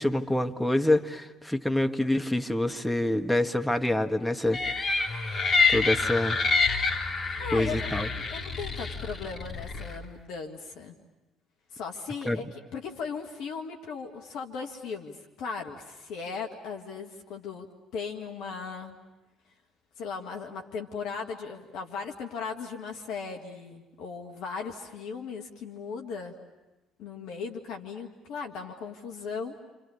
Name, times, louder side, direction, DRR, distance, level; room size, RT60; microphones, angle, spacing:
voice 1, 0.0-4.6 5.7-6.4 7.5-8.1 12.3-12.4, left 1 dB, 5° left, 5 dB, 1.7 m, -26 dB
sound 1, 4.5-10.0, left 4 dB, 45° left, 3.7 m, -27 dB
voice 2, 7.4-11.0 11.7-17.7 17.9-19.0 20.0-26.4 27.0-29.6, left 5 dB, 65° left, 3 dB, 1.8 m, -37 dB
29.0 x 28.0 x 7.1 m, 1.1 s
figure-of-eight pair, 50°, 0 cm